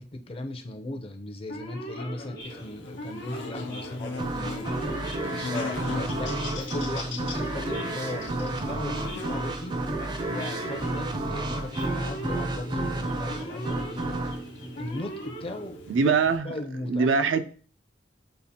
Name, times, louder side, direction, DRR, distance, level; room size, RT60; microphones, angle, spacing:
voice 1, 0.0-4.8 5.3-9.8 10.3-14.2 14.8-16.1 16.4-17.2, left 1 dB, 30° left, 0.5 m, -37 dB
Male speech man speaking / Siren, 1.5-16.2, equal, 55° left, 1.1 m, -40 dB
Buzz, 2.4-16.4, left 3 dB, 75° left, 0.7 m, -41 dB
sound 1, 4.2-15.6, right 2 dB, 25° right, 0.4 m, -31 dB
voice 2, 15.9-16.6 16.9-17.4, right 5 dB, 85° right, 0.4 m, -23 dB
6.5 x 2.4 x 2.7 m
head